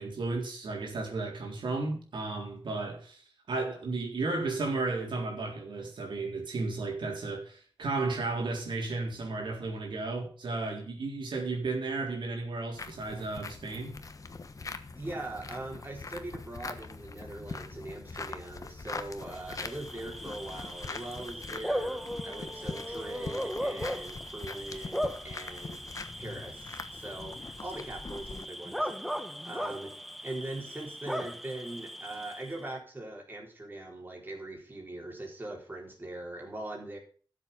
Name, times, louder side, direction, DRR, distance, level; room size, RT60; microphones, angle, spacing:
voice 1, 0.0-13.9, right 3 dB, 80° right, 3.8 m, -34 dB
sound 1, 12.7-28.5, left 4 dB, 45° left, 1.2 m, -43 dB
voice 2, 14.9-25.8 26.2-27.4 27.6-29.2 29.4-29.9 30.2-37.0, right 2 dB, 25° right, 4.0 m, -41 dB
Bark / Cricket, 19.4-32.7, equal, ahead, 1.1 m, -38 dB
13.0 x 7.5 x 5.2 m
wide cardioid pair, 90°, 8 cm